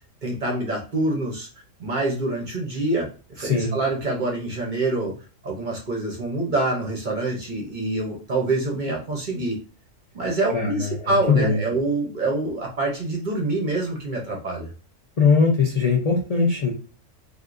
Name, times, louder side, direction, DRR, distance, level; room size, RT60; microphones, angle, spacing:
voice 1, 0.2-1.5 1.8-5.1 5.4-9.6 10.1-14.7, right 2 dB, 45° right, -1 dB, 0.7 m, -26 dB
voice 2, 10.5-11.6 15.2-16.7, left 5 dB, 60° left, -1 dB, 0.4 m, -20 dB
3.5 x 2.5 x 2.5 m, 0.36 s
omnidirectional pair, 1.4 m